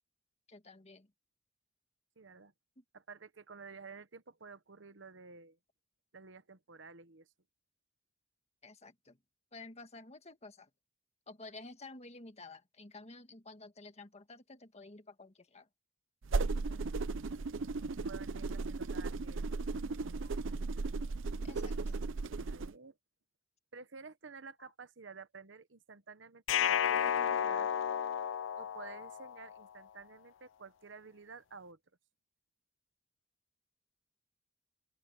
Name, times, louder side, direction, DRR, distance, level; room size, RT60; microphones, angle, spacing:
voice 1, 0.5-1.1 8.6-9.2 9.5-10.7 11.3-15.7 21.4-22.0, left 3 dB, 35° left, 1.7 m, -52 dB
voice 2, 2.2-2.5 2.9-5.6 6.1-7.3 16.5-17.1 18.1-20.4 22.5-23.0 23.7-27.7 28.6-31.8, right 4 dB, 70° right, 1.0 m, -52 dB
sound 1, 16.2-22.7, right 3 dB, 90° right, 0.6 m, -36 dB
sound 2, 26.5-29.6, left 9 dB, 75° left, 0.4 m, -32 dB
open air
head